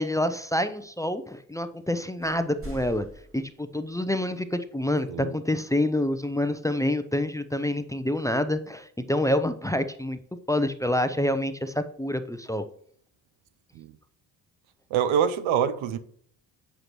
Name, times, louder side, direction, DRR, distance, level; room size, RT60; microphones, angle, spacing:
voice 1, 0.0-3.0 3.3-10.2 10.5-12.6, left 1 dB, 5° left, 0.6 m, -27 dB
sound 1, 1.7-1.9 2.2-4.2, right 1 dB, 25° right, 2.3 m, -44 dB
voice 2, 14.9-16.0, right 8 dB, 70° right, 0.7 m, -25 dB
7.8 x 7.7 x 3.0 m
hypercardioid pair, 45°, 49 cm